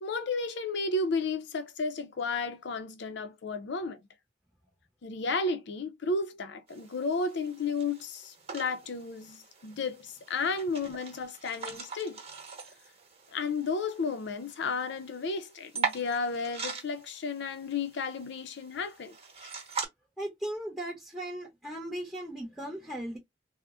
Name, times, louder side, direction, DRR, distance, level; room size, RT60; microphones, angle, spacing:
voice 1, 0.0-4.0 5.0-12.2 13.3-19.2, left 4 dB, 65° left, 0.5 m, -33 dB
sound 1, 6.7-19.9, right 5 dB, 35° right, 1.1 m, -42 dB
voice 2, 20.2-23.2, right 1 dB, 5° right, 0.9 m, -37 dB
3.5 x 2.0 x 2.4 m
head